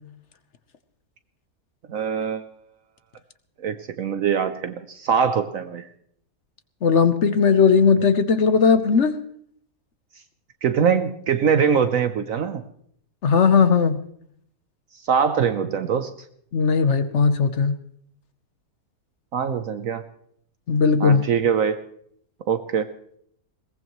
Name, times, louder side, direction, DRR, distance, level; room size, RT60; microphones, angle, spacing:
voice 1, 1.9-2.4 3.6-5.9 10.6-12.6 15.0-16.1 19.3-20.0 21.0-21.8 22.5-22.9, right 7 dB, 65° right, 10 dB, 1.1 m, -23 dB
voice 2, 6.8-9.1 13.2-14.0 16.5-17.8 20.7-21.2, left 5 dB, 55° left, 10 dB, 1.1 m, -18 dB
21.0 x 19.0 x 3.1 m, 0.67 s
omnidirectional pair, 1.6 m